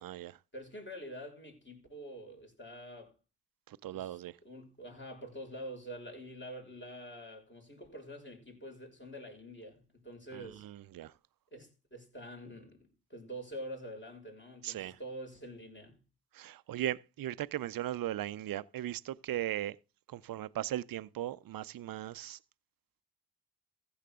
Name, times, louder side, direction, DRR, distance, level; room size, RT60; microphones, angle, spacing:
voice 1, 0.0-0.4 3.7-4.4 10.3-11.1 14.6-15.0 16.3-19.8 20.1-22.4, right 13 dB, 60° right, 0.6 m, -38 dB
voice 2, 0.5-3.2 3.9-10.6 11.5-16.0, equal, 30° left, 6.2 m, -46 dB
15.0 x 7.2 x 3.7 m
supercardioid pair, 40°, 39 cm